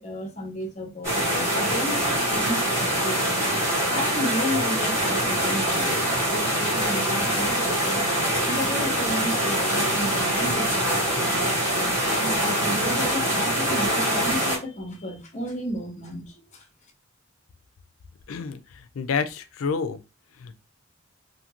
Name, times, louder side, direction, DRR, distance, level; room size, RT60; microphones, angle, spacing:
voice 1, 0.0-3.4 3.9-6.0 6.3-11.5 12.1-16.6, left 1 dB, 35° left, 0.8 m, -33 dB
sound 1, 1.0-14.6, right 1 dB, 15° right, 1.2 m, -24 dB
voice 2, 18.3-20.0 20.4-20.6, left 5 dB, 85° left, 0.4 m, -29 dB
2.6 x 2.5 x 2.8 m
head